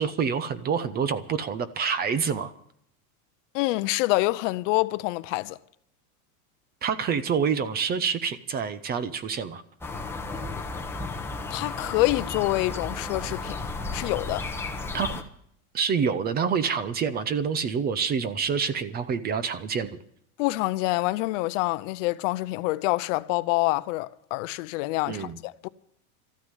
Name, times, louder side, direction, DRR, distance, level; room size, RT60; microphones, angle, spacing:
voice 1, 0.0-2.5 6.8-9.6 14.9-15.2 15.7-20.0 25.1-25.4, right 6 dB, 20° right, 0.6 m, -27 dB
voice 2, 3.5-5.6 11.5-13.6 13.9-14.5 20.4-25.7, left 20 dB, 55° left, 0.7 m, -26 dB
sound 1, 9.8-15.2, left 3 dB, 5° left, 1.1 m, -33 dB
14.0 x 9.4 x 9.7 m
supercardioid pair, 155°, 45 cm